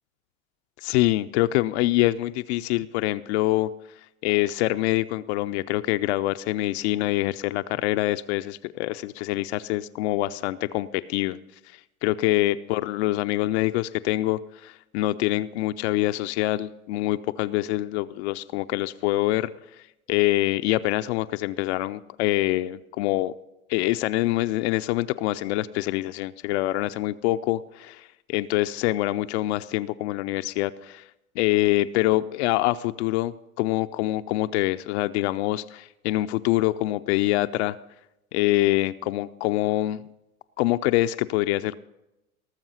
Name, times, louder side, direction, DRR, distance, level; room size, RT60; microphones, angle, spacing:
voice 1, 0.8-3.7 4.2-11.4 12.0-19.5 20.1-23.3 23.7-31.0 31.4-37.8 38.3-40.0 40.6-41.8, left 16 dB, 50° left, 11 dB, 0.5 m, -25 dB
18.0 x 7.2 x 5.7 m, 0.91 s
hypercardioid pair, 90°, 43 cm